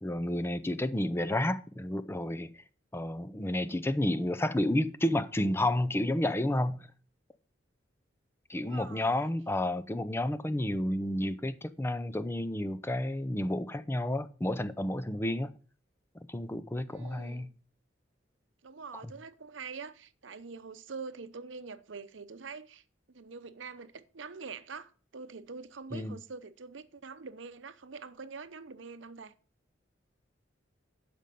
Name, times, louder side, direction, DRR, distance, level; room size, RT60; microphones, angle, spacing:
voice 1, 0.0-2.5 2.9-6.9 8.5-15.5 16.3-17.5 25.9-26.1, left 1 dB, 15° left, 0.5 m, -31 dB
voice 2, 8.5-9.3 16.9-17.5 18.6-29.3, right 4 dB, 80° right, 0.7 m, -45 dB
12.0 x 5.2 x 5.3 m
head